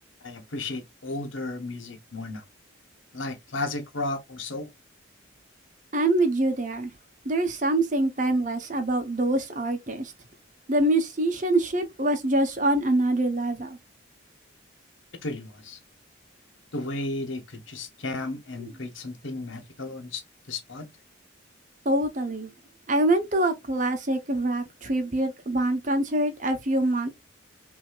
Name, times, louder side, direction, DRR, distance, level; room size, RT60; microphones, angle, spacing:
voice 1, 0.2-2.4 3.1-4.7 15.2-15.8 16.7-20.2 20.5-20.9, left 2 dB, 75° left, 1.2 m, -34 dB
voice 2, 5.9-6.9 7.2-10.1 10.7-13.8 21.8-22.5 22.9-27.1, right 1 dB, 40° right, 0.9 m, -25 dB
5.9 x 2.8 x 2.4 m
head